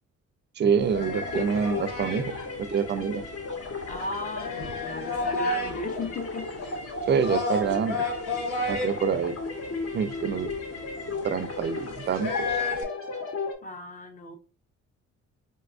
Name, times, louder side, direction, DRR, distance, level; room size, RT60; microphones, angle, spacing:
voice 1, 0.6-3.2 7.1-8.1 8.7-9.3 9.9-10.5 11.2-12.6, right 6 dB, 35° right, 0.4 m, -26 dB
sound 1, 0.8-12.8, left 2 dB, 75° left, 0.9 m, -33 dB
sound 2, 1.0-13.5, left 3 dB, 50° left, 0.9 m, -35 dB
voice 2, 3.9-6.5 13.6-14.4, left 3 dB, 25° left, 0.6 m, -36 dB
4.0 x 2.3 x 2.4 m
cardioid pair, 90°, 30 cm